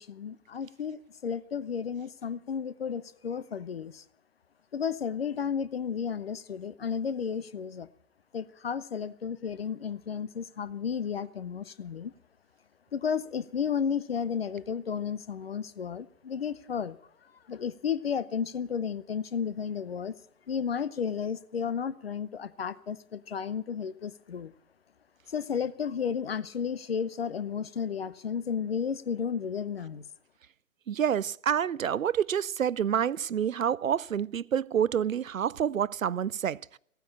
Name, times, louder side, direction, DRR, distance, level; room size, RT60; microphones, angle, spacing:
voice 1, 0.0-4.0 4.7-7.9 8.3-12.1 12.9-17.0 17.5-20.1 20.5-24.5 25.3-30.0, left 7 dB, 45° left, 0.8 m, -33 dB
voice 2, 30.9-36.6, right 8 dB, 70° right, 0.5 m, -28 dB
15.5 x 9.4 x 8.5 m
figure-of-eight pair, 135°, 42 cm